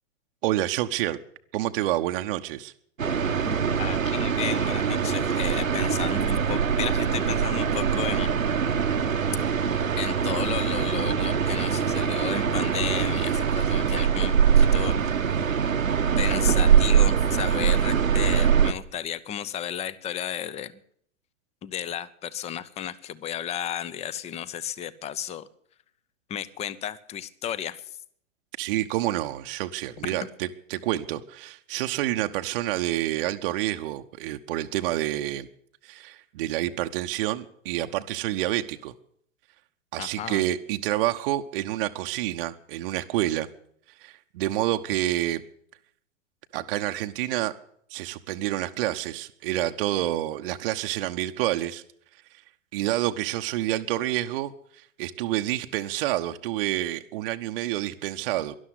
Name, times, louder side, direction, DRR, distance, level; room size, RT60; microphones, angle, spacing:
voice 1, 0.4-1.2 1.5-2.7 28.6-35.5 35.8-38.9 39.9-43.5 44.0-45.4 46.5-47.5 47.9-51.8 52.3-52.4 52.7-58.6, right 15 dB, 45° right, 7 dB, 0.8 m, -28 dB
sound 1, 3.0-18.7, right 7 dB, 90° right, 1.1 m, -23 dB
voice 2, 3.4-8.3 10.0-15.0 16.2-20.7 21.6-25.5 26.3-27.8 40.0-40.4, left 10 dB, 15° left, 19 dB, 0.6 m, -33 dB
12.5 x 11.5 x 9.7 m, 0.67 s
figure-of-eight pair, 110°, 39 cm